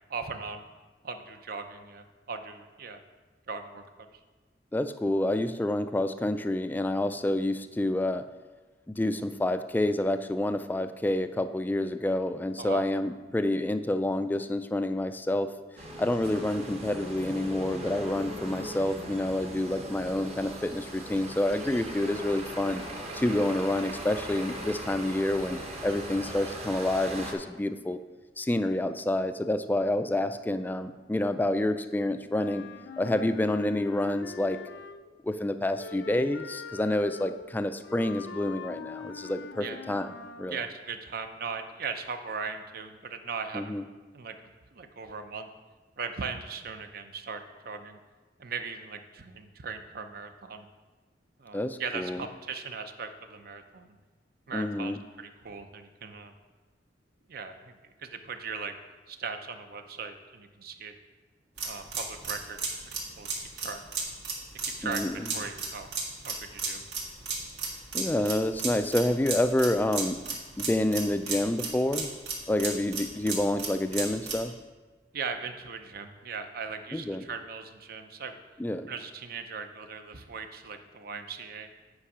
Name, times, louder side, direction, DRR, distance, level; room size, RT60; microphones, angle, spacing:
voice 1, 0.1-0.6 1.0-3.0 3.5-4.2 12.6-12.8 39.6-39.8 40.5-43.8 44.1-45.5 46.0-48.0 48.4-50.7 51.4-54.0 54.5-56.3 57.3-58.8 59.1-60.9 61.6-63.8 64.6-65.9 66.2-66.8 75.1-78.4 78.9-81.7, right 5 dB, 60° right, 7 dB, 0.6 m, -39 dB
voice 2, 4.7-8.2 8.9-15.5 16.0-22.8 23.1-28.0 28.4-32.6 33.0-34.6 35.2-40.1 40.4-40.6 43.5-43.8 51.5-52.2 54.5-55.0 64.8-65.1 67.9-70.2 70.6-72.1 72.5-74.5 76.9-77.2 78.6-78.9, left 1 dB, 10° left, 10 dB, 0.3 m, -28 dB
sound 1, 15.8-27.3, right 1 dB, 35° right, 1.0 m, -39 dB
Wind instrument woodwind instrument, 32.3-35.2 35.7-40.6, left 5 dB, 80° left, 0.4 m, -43 dB
sound 2, 61.6-74.5, right 4 dB, 75° right, 1.7 m, -35 dB
8.5 x 5.3 x 4.9 m, 1.3 s
head